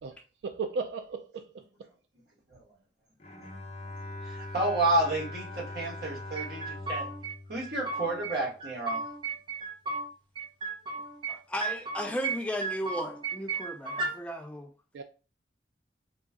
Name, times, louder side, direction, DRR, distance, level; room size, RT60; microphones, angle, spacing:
voice 1, 0.0-1.9 14.9-15.0, right 4 dB, 80° right, 0.3 m, -36 dB
Bowed string instrument, 3.2-8.5, left 2 dB, 35° left, 0.7 m, -42 dB
voice 2, 4.2-7.1 7.5-9.0, right 2 dB, 60° right, 1.4 m, -30 dB
sound 1, 6.4-7.3 7.6-8.3 8.6-10.1 10.4-11.3 11.6-12.4 12.6-14.1, right 3 dB, 25° right, 0.8 m, -34 dB
voice 3, 11.3-14.7, equal, 5° left, 0.3 m, -35 dB
4.0 x 2.3 x 3.6 m
head